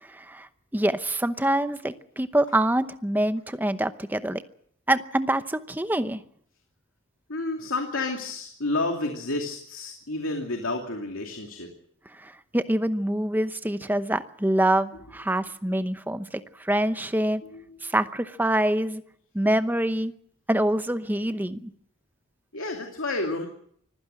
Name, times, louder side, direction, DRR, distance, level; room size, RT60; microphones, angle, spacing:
voice 1, 0.0-0.5 0.7-4.4 4.9-6.2 12.2-17.4 17.8-19.0 19.3-20.1 20.5-21.7, right 1 dB, 10° right, 11 dB, 0.8 m, -25 dB
voice 2, 7.3-11.7 14.9-15.0 17.5-17.9 22.5-23.5, left 2 dB, 80° left, 3 dB, 2.7 m, -30 dB
25.0 x 15.5 x 7.7 m, 0.66 s
head